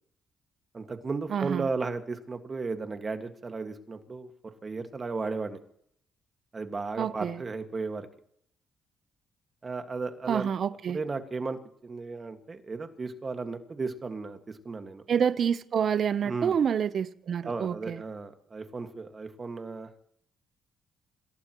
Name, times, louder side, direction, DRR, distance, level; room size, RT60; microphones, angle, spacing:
voice 1, 0.7-4.3 4.6-5.6 6.5-8.1 9.6-10.5 10.9-15.0 16.2-16.6 17.4-19.9, right 4 dB, 35° right, 1.8 m, -35 dB
voice 2, 1.3-1.6 7.0-7.4 10.3-11.0 15.1-18.0, right 7 dB, 55° right, 0.8 m, -27 dB
26.5 x 17.0 x 3.1 m
cardioid pair, 90°, 0 cm